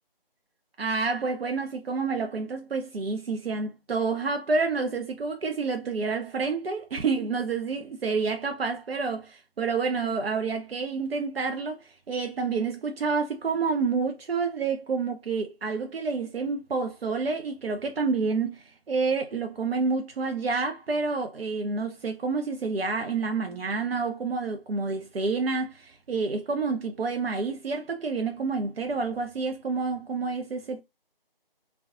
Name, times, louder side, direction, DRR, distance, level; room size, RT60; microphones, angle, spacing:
voice 1, 0.8-30.8, right 4 dB, 80° right, 0.5 m, -29 dB
2.5 x 2.2 x 2.4 m
figure-of-eight pair, 160°, 29 cm